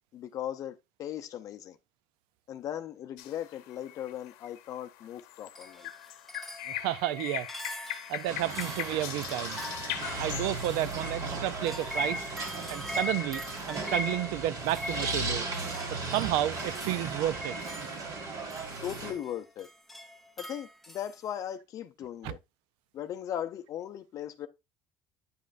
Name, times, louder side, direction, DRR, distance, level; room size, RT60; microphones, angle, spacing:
voice 1, 0.1-1.8 2.5-5.9 18.8-19.7 20.4-22.4 22.9-24.5, left 10 dB, 45° left, 0.6 m, -38 dB
sound 1, 3.2-12.4, left 13 dB, 90° left, 0.9 m, -42 dB
sound 2, 5.6-21.2, left 1 dB, ahead, 0.7 m, -41 dB
voice 2, 6.7-7.5 7.9-9.6 10.2-12.3 12.7-15.5 15.9-17.6 18.0-18.1 22.2-22.3, right 14 dB, 75° right, 0.5 m, -32 dB
sound 3, 8.3-19.1, right 3 dB, 45° right, 2.1 m, -36 dB
9.4 x 5.3 x 2.5 m
cardioid pair, 145°, 8 cm